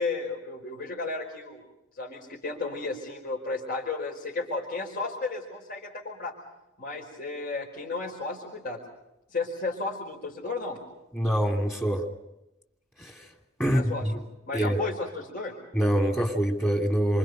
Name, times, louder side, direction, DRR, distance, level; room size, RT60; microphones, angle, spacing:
voice 1, 0.0-1.7 1.9-6.3 6.8-8.8 9.3-10.8 13.6-14.1 14.5-15.5, left 3 dB, 50° left, -2 dB, 4.9 m, -33 dB
voice 2, 11.1-12.1 13.0-13.2 13.6-14.2 14.5-14.8 15.7-17.2, equal, 10° left, 2 dB, 2.8 m, -25 dB
29.0 x 26.5 x 5.4 m, 0.92 s
head